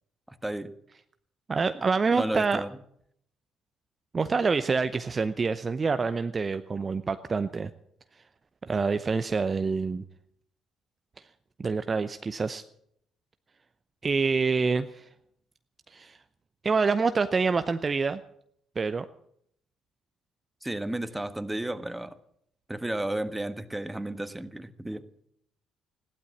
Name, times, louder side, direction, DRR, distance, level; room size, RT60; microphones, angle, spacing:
voice 1, 0.3-0.7 2.1-2.7 20.6-22.2 22.7-25.0, right 1 dB, 10° right, 11 dB, 1.4 m, -33 dB
voice 2, 1.5-2.6 4.1-7.7 8.6-10.0 11.6-12.6 14.0-15.1 15.9-16.2 16.6-18.2 18.8-19.1, right 4 dB, 35° right, 11 dB, 0.7 m, -26 dB
15.5 x 12.0 x 7.3 m, 0.70 s
hypercardioid pair, 50°, 0 cm